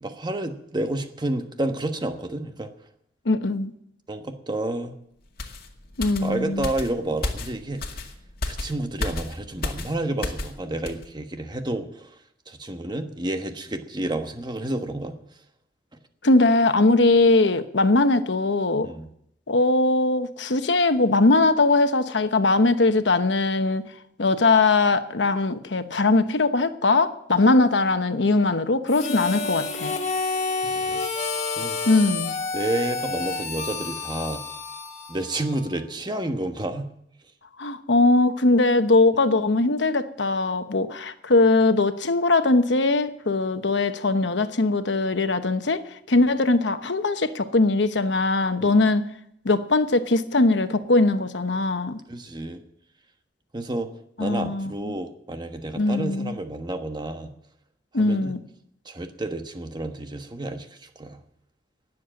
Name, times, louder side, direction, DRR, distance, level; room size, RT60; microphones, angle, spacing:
voice 1, 0.0-2.7 4.1-5.0 6.2-7.8 8.5-12.1 12.5-15.2 18.8-19.1 30.2-30.4 30.6-31.0 31.5-32.0 32.5-34.4 35.1-36.9 48.6-48.7 52.1-52.6 53.5-53.9 54.2-57.3 58.0-58.3 58.8-61.2, right 1 dB, 25° right, 7 dB, 1.2 m, -30 dB
voice 2, 3.2-3.7 6.0-6.7 16.2-18.9 19.5-23.9 24.2-30.0 31.9-32.4 37.6-45.8 46.1-49.1 49.4-52.0 54.2-55.0 55.8-56.4 57.9-58.4, left 2 dB, 75° left, 9 dB, 1.1 m, -21 dB
sound 1, 5.4-10.6 10.9-11.1, left 2 dB, 55° left, 2.1 m, -33 dB
Harmonica, 28.9-35.8, left 4 dB, 40° left, 1.7 m, -29 dB
19.0 x 7.6 x 7.6 m, 0.74 s
head